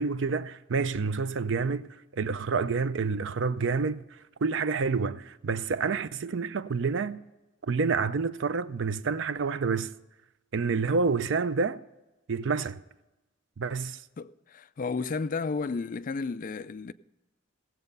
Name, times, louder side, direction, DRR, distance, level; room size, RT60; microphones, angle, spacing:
voice 1, 0.0-4.0 4.4-7.2 7.7-9.9 10.5-11.8 12.3-12.8 13.6-14.0, right 4 dB, 60° right, 0.5 m, -28 dB
voice 2, 14.2-16.9, left 4 dB, 40° left, 0.4 m, -32 dB
17.0 x 7.9 x 5.4 m
head